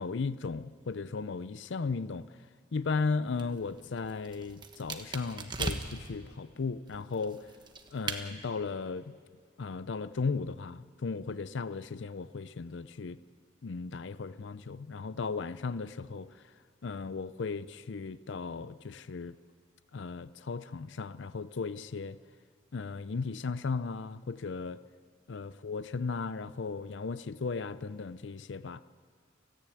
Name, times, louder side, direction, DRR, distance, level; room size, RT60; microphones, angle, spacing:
voice 1, 0.0-2.2 2.7-7.5 7.9-9.1 9.6-13.2 13.6-16.3 16.8-19.3 19.9-22.2 22.7-24.8 25.3-28.8, left 4 dB, 65° left, 0.5 m, -36 dB
sound 1, 3.3-6.1 6.9-8.2, right 3 dB, 20° right, 1.2 m, -39 dB
30.0 x 10.5 x 9.1 m
head